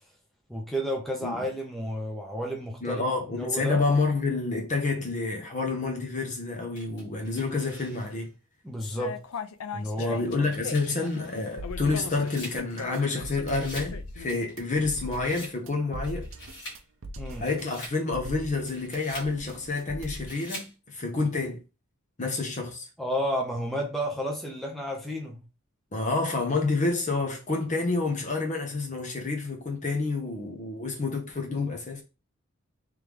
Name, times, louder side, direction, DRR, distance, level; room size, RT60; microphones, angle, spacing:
voice 1, 0.5-3.0 3.4-3.8 8.6-9.2 9.7-10.2 17.2-17.4 23.0-25.4, equal, ahead, 0.8 m, -31 dB
voice 2, 2.8-8.3 10.0-16.3 17.4-21.6 22.2-22.9 25.9-32.0, left 3 dB, 35° left, 0.8 m, -28 dB
sound 1, 6.7-8.3 8.8-8.9 10.1-13.1 13.4-14.0 14.3-15.6 16.0-16.8 17.2-18.0 18.5-19.3 20.0-20.7, equal, 55° left, 1.8 m, -45 dB
sound 2, 8.8-14.4, left 6 dB, 75° left, 0.4 m, -39 dB
sound 3, 11.6-20.3, equal, 65° right, 0.6 m, -41 dB
3.4 x 3.3 x 3.4 m
head